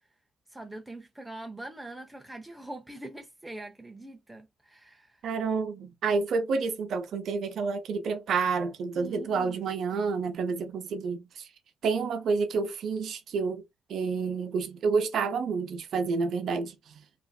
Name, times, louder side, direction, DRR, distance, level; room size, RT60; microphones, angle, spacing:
voice 1, 0.5-5.2 9.0-9.6 11.9-12.0, right 2 dB, 10° right, 0.5 m, -43 dB
voice 2, 5.2-11.5 11.8-13.6 13.9-17.0, right 5 dB, 65° right, 0.6 m, -29 dB
2.5 x 2.5 x 2.2 m
cardioid pair, 90°, 0 cm